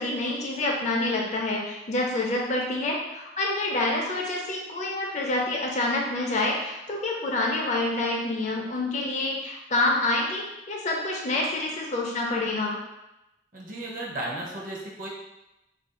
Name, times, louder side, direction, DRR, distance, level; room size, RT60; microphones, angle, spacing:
voice 1, 0.0-12.8, left 2 dB, 40° left, -1 dB, 0.5 m, -27 dB
voice 2, 13.5-15.1, right 1 dB, 45° right, -3 dB, 0.6 m, -34 dB
2.5 x 2.2 x 3.6 m, 0.94 s
head